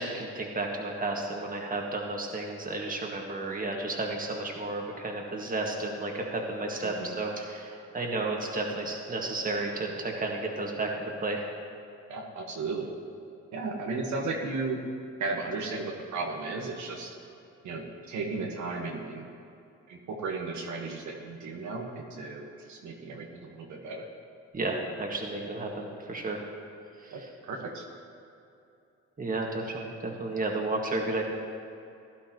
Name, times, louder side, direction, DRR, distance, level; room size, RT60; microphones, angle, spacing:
voice 1, 0.0-11.5 24.5-26.4 27.0-27.1 29.2-31.2, right 2 dB, 30° right, 0 dB, 1.9 m, -32 dB
voice 2, 6.8-7.2 12.1-12.9 13.5-14.8 15.2-17.2 17.6-19.3 19.9-24.1 27.1-27.8, right 3 dB, 70° right, 0 dB, 1.5 m, -35 dB
16.0 x 11.5 x 3.1 m, 2.7 s
cardioid pair, 90°, 30 cm